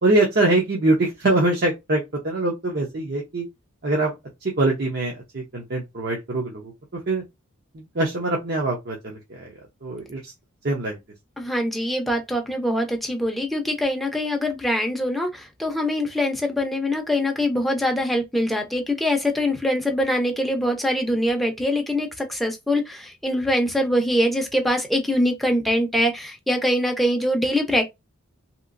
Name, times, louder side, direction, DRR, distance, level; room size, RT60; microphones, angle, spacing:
voice 1, 0.0-3.4 3.8-4.1 4.4-6.7 7.1-7.2 7.7-9.5 9.8-10.3 10.6-11.0, right 2 dB, 50° right, 0.7 m, -23 dB
voice 2, 11.4-27.9, left 1 dB, ahead, 0.6 m, -23 dB
3.0 x 2.9 x 2.5 m
head